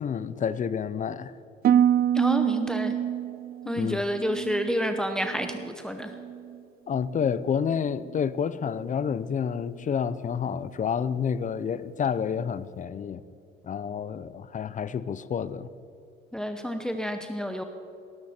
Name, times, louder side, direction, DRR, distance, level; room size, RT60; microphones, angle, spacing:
voice 1, 0.0-1.3 3.8-4.0 6.9-13.2 13.6-15.7, left 7 dB, 35° left, 0.6 m, -29 dB
Harp, 1.6-5.7 6.0-6.6 7.1-7.4, right 10 dB, 45° right, 0.5 m, -27 dB
voice 2, 2.1-2.9 3.6-6.1 16.3-17.6, equal, 5° left, 0.9 m, -29 dB
19.0 x 12.5 x 4.4 m
cardioid pair, 100°, 21 cm